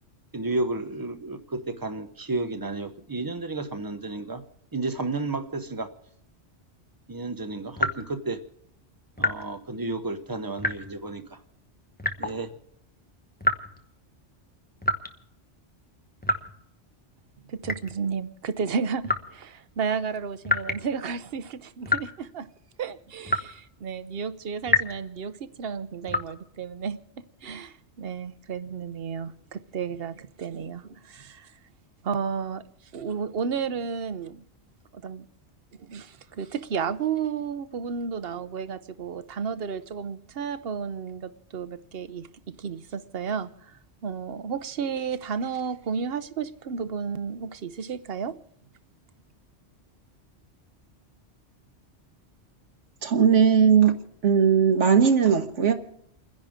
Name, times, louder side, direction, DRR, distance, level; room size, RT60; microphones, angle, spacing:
voice 1, 0.3-4.4 4.7-5.9 7.1-8.4 9.2-11.4 12.2-12.5, right 2 dB, 20° right, 0.9 m, -32 dB
sound 1, 7.8-8.2 9.2-9.5 10.6-11.0 12.0-12.4 13.4-13.8 14.8-15.1 16.2-16.6 17.6-18.0 19.0-19.3 20.4-20.9 21.9-22.1 23.3-23.6 24.7-25.0 26.1-26.3, left 2 dB, 10° left, 0.8 m, -27 dB
voice 2, 17.4-22.5 22.8-27.0 27.4-31.5 32.0-32.6 32.9-34.4 34.9-35.3 35.7-48.4, right 6 dB, 60° right, 1.0 m, -32 dB
voice 3, 53.0-54.0 54.2-55.7, right 7 dB, 85° right, 1.7 m, -18 dB
30.0 x 10.5 x 3.6 m
omnidirectional pair, 1.2 m